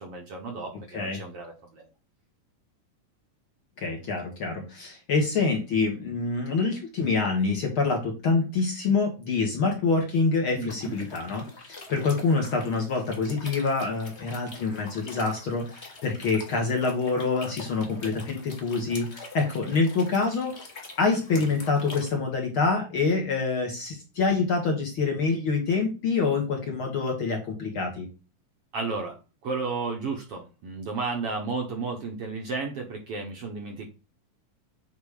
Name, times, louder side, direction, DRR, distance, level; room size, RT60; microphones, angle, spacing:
voice 1, 0.0-1.8 10.6-11.0 28.7-29.2 29.4-33.9, right 4 dB, 55° right, 2 dB, 1.7 m, -33 dB
voice 2, 3.8-20.5 21.0-28.1, left 4 dB, 50° left, 1 dB, 1.9 m, -26 dB
sound 1, 10.7-22.1, left 3 dB, 30° left, 1.5 m, -45 dB
8.8 x 3.3 x 4.9 m, 0.31 s
omnidirectional pair, 3.8 m